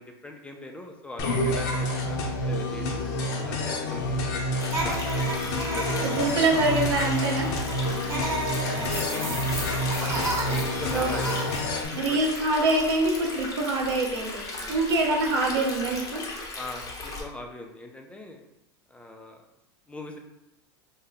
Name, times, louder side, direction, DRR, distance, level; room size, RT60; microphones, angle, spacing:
voice 1, 0.0-3.1 3.4-5.1 5.6-6.4 8.8-9.9 10.4-11.3 11.9-12.2 14.6-14.8 16.5-18.4 18.9-19.4 19.9-20.2, left 2 dB, 10° left, 2 dB, 0.3 m, -41 dB
sound 1, 1.2-11.8, left 1 dB, 55° left, 0.7 m, -29 dB
Stream, 4.6-17.2, left 2 dB, 25° left, 0.7 m, -37 dB
sound 2, 4.7-11.6, right 2 dB, 20° right, 1.1 m, -33 dB
voice 2, 6.0-7.5 8.8-9.3 10.1-10.3 10.9-11.1 12.0-16.2, right 2 dB, 75° right, 1 dB, 0.8 m, -25 dB
2.7 x 2.1 x 3.9 m, 0.91 s
hypercardioid pair, 115°, 14 cm